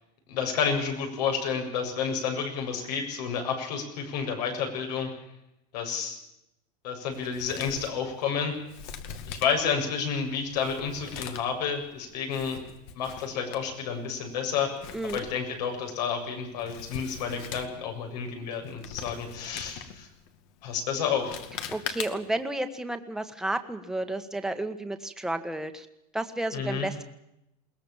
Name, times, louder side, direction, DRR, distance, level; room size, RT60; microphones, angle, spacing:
voice 1, 0.3-5.1 5.7-6.2 6.8-8.5 9.3-12.6 12.9-14.7 15.1-20.1 20.6-21.4 26.5-26.9, left 6 dB, 80° left, 4 dB, 7.1 m, -30 dB
Male speech man speaking, 7.1-22.4, left 8 dB, 55° left, 2.3 m, -43 dB
voice 2, 14.9-15.2 21.7-25.9 26.1-27.0, right 1 dB, ahead, 7 dB, 1.6 m, -32 dB
22.0 x 19.5 x 7.4 m, 0.83 s
supercardioid pair, 145°, 21 cm